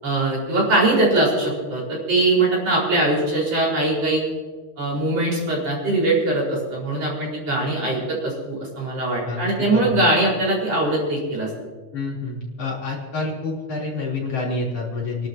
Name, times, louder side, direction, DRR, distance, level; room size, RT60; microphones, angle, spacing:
voice 1, 0.0-4.2 4.8-11.5, right 2 dB, 50° right, -4 dB, 6.1 m, -21 dB
voice 2, 9.3-10.0 11.9-15.3, left 3 dB, 50° left, -4 dB, 4.7 m, -28 dB
28.5 x 12.5 x 3.0 m, 1.4 s
omnidirectional pair, 3.8 m